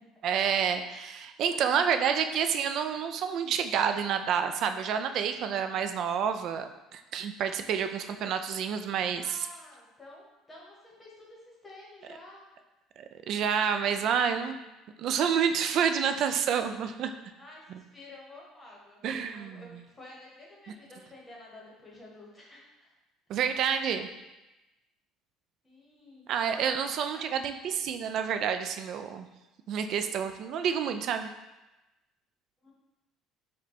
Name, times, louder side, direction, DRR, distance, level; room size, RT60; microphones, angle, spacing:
voice 1, 0.2-9.4 13.0-14.6 15.0-17.1 17.7-17.8 19.0-19.7 23.3-24.1 26.3-29.3 29.7-31.3, right 7 dB, 50° right, 8 dB, 0.3 m, -29 dB
voice 2, 1.5-2.1 9.1-12.5 13.9-14.1 15.7-15.8 17.4-22.9 25.6-27.2 30.2-30.3 32.6-32.7, left 2 dB, 15° left, -4 dB, 1.0 m, -51 dB
5.1 x 2.2 x 4.2 m, 1.0 s
cardioid pair, 145°, 0 cm